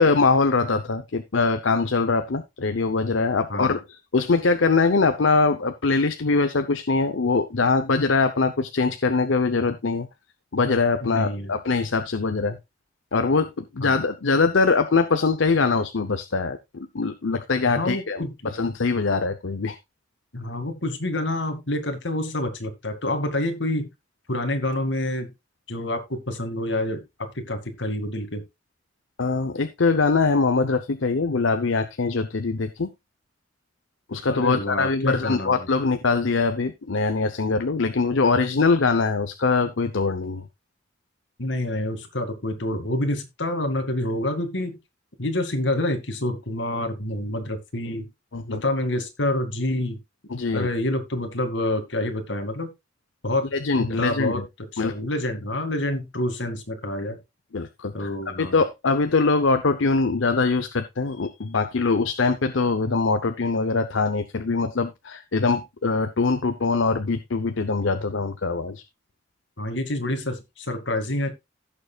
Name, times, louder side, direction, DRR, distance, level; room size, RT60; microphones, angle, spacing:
voice 1, 0.0-10.1 10.5-12.6 13.1-19.8 29.2-32.9 34.1-40.5 48.3-48.6 50.3-50.7 53.5-54.4 54.8-54.9 57.5-58.1 58.4-68.8, left 4 dB, 90° left, 9 dB, 0.8 m, -23 dB
voice 2, 11.0-11.5 13.8-14.0 17.7-18.5 20.3-23.9 24.3-25.3 25.7-27.0 27.3-28.4 34.3-35.7 41.4-44.8 45.2-48.1 48.5-50.0 50.5-52.7 53.2-53.5 53.7-54.4 54.7-57.2 57.9-58.5 69.6-71.3, left 1 dB, 75° left, 6 dB, 2.2 m, -27 dB
16.5 x 6.8 x 2.4 m, 0.22 s
head